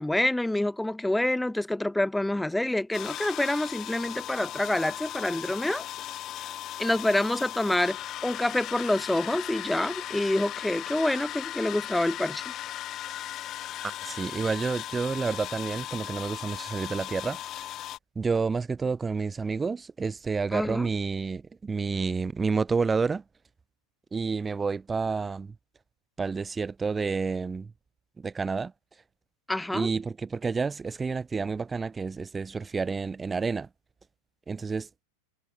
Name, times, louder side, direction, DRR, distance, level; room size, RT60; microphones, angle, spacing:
voice 1, 0.0-5.8 6.8-12.5 20.5-20.9 29.5-29.9, left 1 dB, 5° left, 2.1 m, -27 dB
sound 1, 2.9-18.0, left 13 dB, 30° left, 3.7 m, -37 dB
voice 2, 14.0-17.4 18.2-23.2 24.1-25.5 26.2-27.7 28.2-28.7 29.7-33.7 34.5-35.0, right 4 dB, 15° right, 4.2 m, -29 dB
figure-of-eight pair, 90°, 0 cm